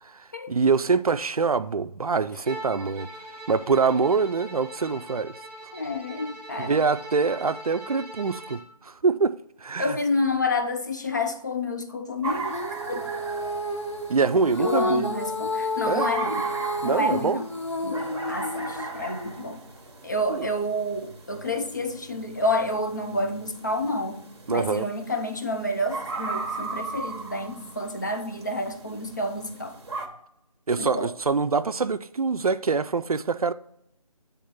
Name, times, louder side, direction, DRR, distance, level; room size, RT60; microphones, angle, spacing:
voice 1, 0.5-3.1 3.5-5.3 6.6-10.0 14.1-15.1 15.9-16.1 16.8-17.4 20.3-20.5 24.5-24.9 30.7-33.5, right 4 dB, 65° right, 0.4 m, -24 dB
Bowed string instrument, 2.4-8.7, right 1 dB, 15° right, 1.4 m, -41 dB
voice 2, 5.7-6.8 9.8-12.6 12.9-13.1 14.6-16.4 16.8-17.5 17.8-19.6 20.0-29.8 30.8-31.1, left 1 dB, 30° left, 0.5 m, -29 dB
sound 1, 12.2-30.1, right 3 dB, 45° right, 1.0 m, -37 dB
Female singing, 12.5-19.0, left 1 dB, 50° left, 0.9 m, -30 dB
8.4 x 3.5 x 5.7 m
figure-of-eight pair, 160°, 20 cm